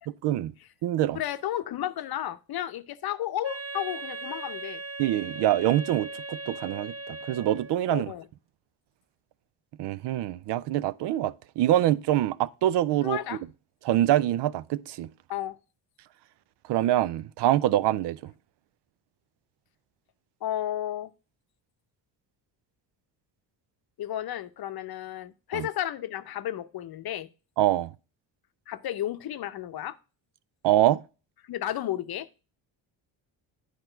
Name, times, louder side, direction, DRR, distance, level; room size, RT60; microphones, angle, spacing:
voice 1, 0.2-0.5 0.8-1.2 5.0-8.1 9.8-13.2 13.8-15.1 16.7-18.3 25.5-25.7 27.6-27.9 30.6-31.0, right 13 dB, 65° right, 0.5 m, -25 dB
voice 2, 1.1-4.8 7.9-8.3 13.0-13.4 15.3-15.6 20.4-21.1 24.0-27.3 28.7-30.0 31.4-32.3, left 12 dB, 55° left, 0.7 m, -33 dB
Wind instrument woodwind instrument, 3.4-7.9, right 2 dB, 30° right, 1.5 m, -38 dB
8.9 x 4.8 x 4.4 m
cardioid pair, 80°, 45 cm